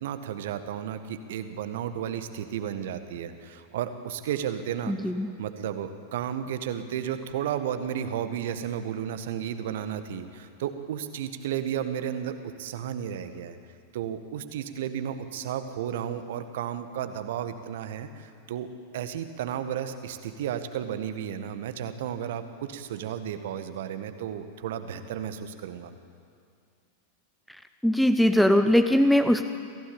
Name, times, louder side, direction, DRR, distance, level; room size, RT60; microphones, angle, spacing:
voice 1, 0.0-4.9 5.4-13.6 13.9-26.0, right 9 dB, 55° right, 9 dB, 1.7 m, -33 dB
voice 2, 4.9-5.3 27.8-29.4, equal, ahead, 8 dB, 0.9 m, -21 dB
27.0 x 16.5 x 8.8 m, 2.3 s
figure-of-eight pair, 90°, 0 cm